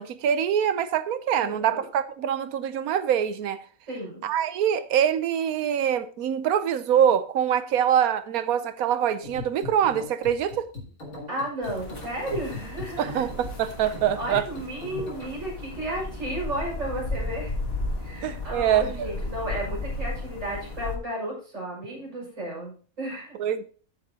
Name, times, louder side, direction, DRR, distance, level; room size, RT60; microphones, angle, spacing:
voice 1, 0.0-3.6 4.2-10.7 13.0-14.5 18.2-19.1 23.3-23.6, right 9 dB, 90° right, 1.2 m, -24 dB
voice 2, 1.4-1.8 3.9-4.3 11.3-13.2 14.2-17.5 18.0-23.4, right 1 dB, 60° right, 6.3 m, -33 dB
sound 1, 9.2-15.3, left 2 dB, 85° left, 3.6 m, -39 dB
sound 2, 11.6-21.0, left 2 dB, 45° left, 2.3 m, -34 dB
14.5 x 6.7 x 2.8 m
omnidirectional pair, 1.5 m